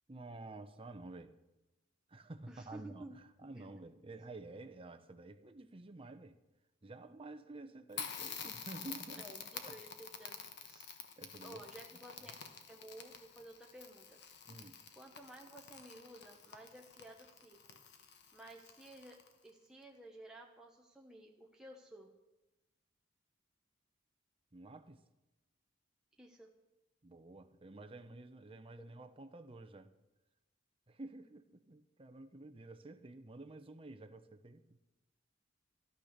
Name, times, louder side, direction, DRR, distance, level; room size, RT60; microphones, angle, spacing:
voice 1, 0.1-1.3 2.1-6.4 6.8-9.3 9.7-9.8 10.8-11.7 14.5-14.8 24.5-25.0 27.0-29.9 30.9-34.8, right 2 dB, 30° right, 7 dB, 0.8 m, -51 dB
voice 2, 2.5-3.1 3.5-3.6 9.1-10.9 11.4-12.4 12.7-14.2 14.9-17.8 18.3-22.1 26.2-26.5 29.0-29.1, right 1 dB, 5° right, -1 dB, 1.0 m, -54 dB
Crackle, 7.9-19.5, left 6 dB, 60° left, 1.3 m, -49 dB
13.0 x 12.0 x 6.6 m, 1.0 s
head